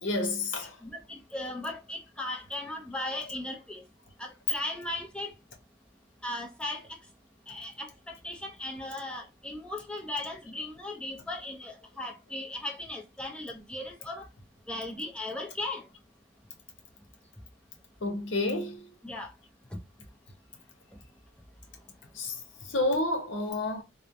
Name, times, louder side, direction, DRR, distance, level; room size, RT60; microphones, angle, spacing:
voice 1, 0.0-0.8 18.0-18.9 22.1-23.8, left 2 dB, 65° left, 0.8 m, -30 dB
voice 2, 0.8-3.8 4.2-5.3 6.2-6.9 7.5-14.3 14.7-15.9 19.0-19.3, left 1 dB, 5° left, 0.5 m, -37 dB
3.0 x 2.1 x 2.4 m
head